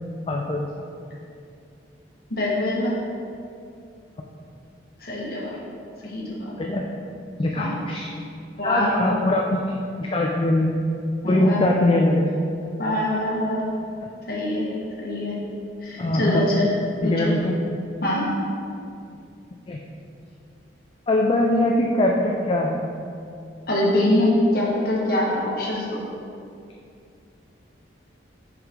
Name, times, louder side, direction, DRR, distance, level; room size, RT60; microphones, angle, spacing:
voice 1, 0.3-0.7 6.6-6.9 7.4-8.1 8.6-10.8 11.2-12.3 16.0-16.5 17.0-17.5 19.7-19.8 21.1-22.8, left 1 dB, 30° left, 0 dB, 0.4 m, -22 dB
voice 2, 2.3-3.0 5.0-5.5 6.0-6.6 7.6-7.8 8.6-9.2 11.2-11.6 12.8-13.6 14.3-14.7 15.0-15.4 15.8-16.7 17.0-17.3 18.0-18.3 23.7-26.0, left 1 dB, 55° left, -5 dB, 1.3 m, -24 dB
6.3 x 4.9 x 3.6 m, 2.5 s
head